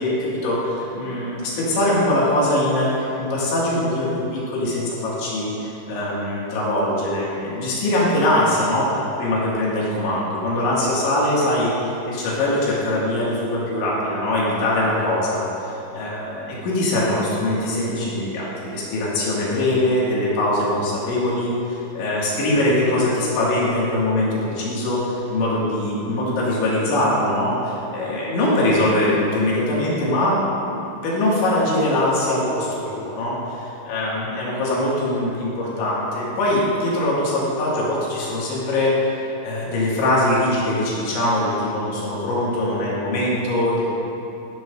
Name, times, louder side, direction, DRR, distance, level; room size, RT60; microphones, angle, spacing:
voice 1, 0.0-8.9 9.2-30.4 30.6-43.8, left 1 dB, 70° left, -6 dB, 4.3 m, -22 dB
13.5 x 11.0 x 2.6 m, 2.9 s
omnidirectional pair, 5.8 m